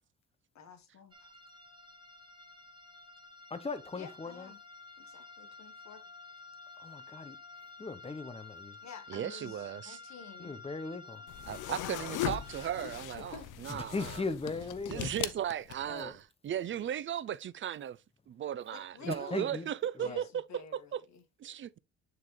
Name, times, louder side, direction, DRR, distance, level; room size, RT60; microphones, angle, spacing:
voice 1, 0.5-1.3 3.9-4.6 5.0-6.1 8.8-10.5 13.1-13.5 18.7-19.5 20.0-21.2, left 6 dB, 65° left, 1.5 m, -50 dB
sound 1, 1.1-13.0, left 3 dB, 15° right, 1.4 m, -51 dB
voice 2, 3.5-4.5 6.8-7.4 7.8-8.8 10.4-11.2 12.2-12.4 13.7-15.1 15.9-16.1 19.0-19.7 20.0-20.3, left 3 dB, 20° left, 0.9 m, -38 dB
voice 3, 9.1-10.0 11.5-13.4 13.6-14.1 14.9-18.0 18.3-20.4 20.7-21.0 21.4-21.8, right 10 dB, 40° right, 0.4 m, -36 dB
sound 2, 11.3-16.0, left 12 dB, 85° left, 0.7 m, -39 dB
9.4 x 3.8 x 3.2 m
cardioid pair, 90°, 30 cm